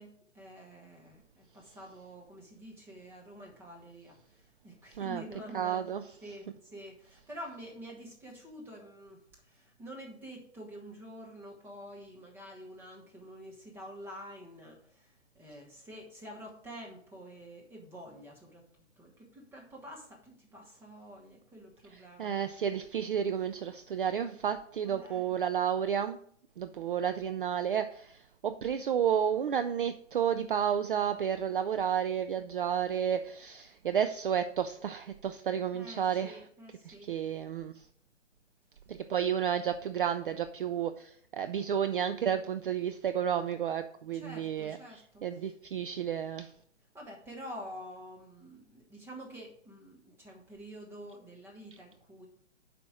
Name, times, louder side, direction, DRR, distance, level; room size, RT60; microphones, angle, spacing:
voice 1, 0.0-5.8 6.2-18.6 19.0-22.4 24.8-25.2 35.7-37.2 44.1-45.5 46.9-52.3, equal, 5° right, -1 dB, 1.2 m, -48 dB
voice 2, 5.5-6.0 21.9-26.2 26.6-36.4 36.9-37.9 38.9-46.5, right 8 dB, 45° right, 10 dB, 0.4 m, -31 dB
7.5 x 5.1 x 4.9 m, 0.62 s
figure-of-eight pair, 140°, 37 cm